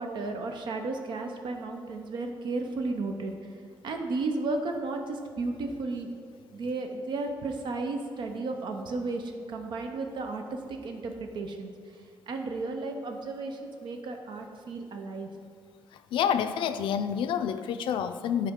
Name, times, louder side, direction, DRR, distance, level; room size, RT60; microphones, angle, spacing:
voice 1, 0.0-3.4 3.8-6.1 6.5-11.7 12.3-15.3, right 3 dB, 70° right, 4 dB, 0.6 m, -33 dB
voice 2, 16.1-18.5, left 8 dB, 90° left, 10 dB, 0.4 m, -28 dB
8.2 x 4.9 x 3.6 m, 2.1 s
cardioid pair, 110°, 8 cm